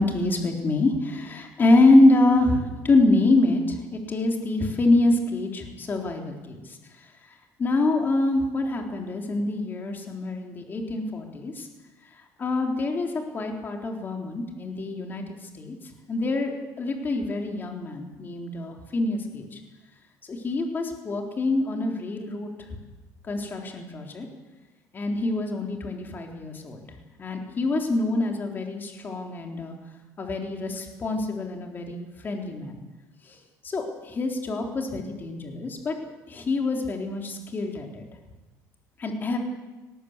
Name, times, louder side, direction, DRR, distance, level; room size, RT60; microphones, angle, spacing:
voice 1, 0.0-6.8 7.6-11.7 12.4-15.2 15.5-15.8 16.1-19.6 20.2-22.5 23.2-24.3 24.9-26.9 27.2-29.8 30.2-32.8 33.3-33.4 33.6-36.0 36.3-38.1 39.0-39.4, left 2 dB, 30° left, 2 dB, 3.9 m, -25 dB
19.5 x 18.0 x 8.2 m, 1.2 s
cardioid pair, 130°, 7 cm